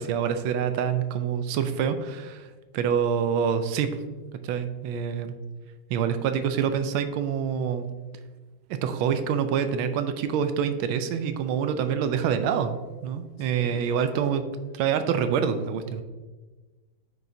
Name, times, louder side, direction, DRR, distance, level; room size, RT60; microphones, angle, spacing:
voice 1, 0.0-4.0 4.4-5.3 5.9-7.9 8.7-14.4 14.7-16.0, right 7 dB, 90° right, 9 dB, 1.4 m, -26 dB
voice 2, 13.4-14.4, left 2 dB, 85° left, 0 dB, 2.1 m, -44 dB
8.7 x 4.9 x 2.7 m, 1.3 s
omnidirectional pair, 2.2 m